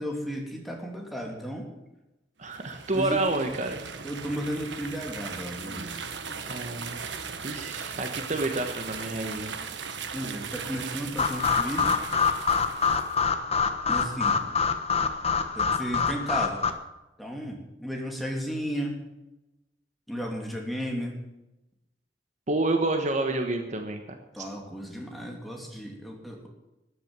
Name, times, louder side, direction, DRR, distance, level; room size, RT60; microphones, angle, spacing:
voice 1, 0.0-1.7 2.9-3.2 4.0-6.0 10.1-11.9 13.9-14.4 15.5-16.6 17.2-19.0 20.1-21.1 24.3-26.5, equal, ahead, 0 dB, 3.0 m, -34 dB
voice 2, 2.4-3.8 6.5-7.0 7.4-9.6 22.5-24.4, right 2 dB, 40° right, 5 dB, 1.3 m, -29 dB
sound 1, 2.4-13.2, right 6 dB, 85° right, 1.4 m, -38 dB
sound 2, 11.2-16.7, left 5 dB, 35° left, 1.2 m, -26 dB
13.5 x 10.0 x 7.6 m, 0.97 s
head